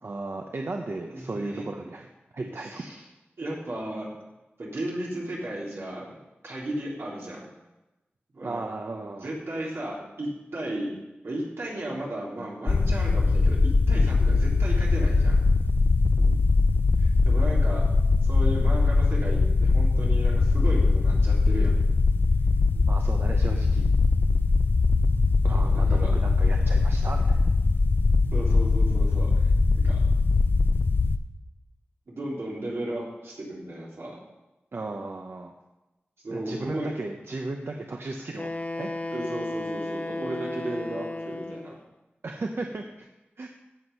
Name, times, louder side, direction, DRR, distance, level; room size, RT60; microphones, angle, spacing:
voice 1, 0.0-2.1 2.3-2.8 8.4-9.3 16.2-16.4 22.7-23.9 25.4-27.5 34.7-35.5 36.3-38.9 42.2-42.8 43.4-43.5, right 2 dB, 65° right, 3 dB, 0.9 m, -35 dB
voice 2, 1.1-1.7 2.6-3.0 3.4-4.1 4.6-6.2 6.4-7.5 8.3-8.6 9.2-10.9 11.2-15.4 17.0-17.8 18.2-21.7 25.5-26.1 28.3-29.3 29.7-30.0 32.1-34.2 36.2-37.0 39.1-41.8, right 1 dB, 90° right, -5 dB, 3.7 m, -35 dB
sound 1, 12.7-31.2, left 3 dB, 60° left, 0.6 m, -21 dB
Wind instrument woodwind instrument, 38.4-41.8, left 2 dB, 40° left, 0.9 m, -34 dB
15.5 x 6.4 x 5.5 m, 1.0 s
wide cardioid pair, 80°, 4 cm